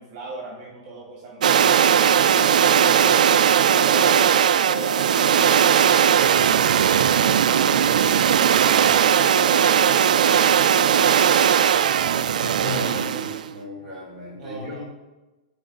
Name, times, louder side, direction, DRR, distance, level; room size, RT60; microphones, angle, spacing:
voice 1, 0.0-3.2 3.6-5.9 14.4-14.8, right 2 dB, 30° right, -2 dB, 1.6 m, -38 dB
sound 1, 1.4-13.4, right 8 dB, 85° right, 0.4 m, -18 dB
voice 2, 12.4-14.8, left 1 dB, 5° left, -10 dB, 3.0 m, -34 dB
11.0 x 4.8 x 4.0 m, 1.1 s
supercardioid pair, 175°, 4 cm